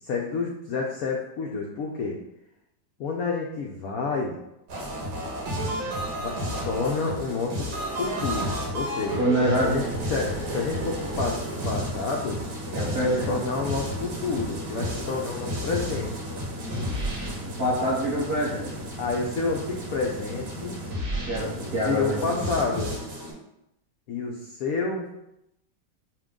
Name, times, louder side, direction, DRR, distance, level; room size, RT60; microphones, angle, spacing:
voice 1, 0.0-2.2 3.0-4.4 6.2-9.2 9.6-9.8 10.1-12.4 13.0-16.1 19.0-20.8 21.8-23.0 24.1-25.1, left 4 dB, 85° left, 0 dB, 0.8 m, -29 dB
sound 1, 4.7-23.3, equal, 85° right, 1.8 m, -32 dB
voice 2, 9.2-9.9 12.7-13.3 17.5-18.8 21.2-22.3, right 1 dB, 45° right, -7 dB, 0.8 m, -26 dB
6.0 x 2.2 x 3.6 m, 0.84 s
omnidirectional pair, 2.2 m